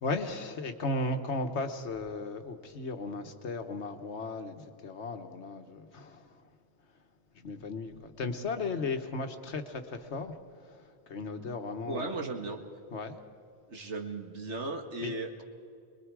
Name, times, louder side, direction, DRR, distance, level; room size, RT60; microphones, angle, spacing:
voice 1, 0.0-6.5 7.3-12.3 12.9-13.2 15.0-15.1, left 3 dB, 75° left, 7 dB, 1.5 m, -36 dB
voice 2, 11.9-12.6 13.7-15.4, right 2 dB, 80° right, 3 dB, 2.0 m, -36 dB
25.5 x 21.5 x 4.8 m, 2.3 s
omnidirectional pair, 1.2 m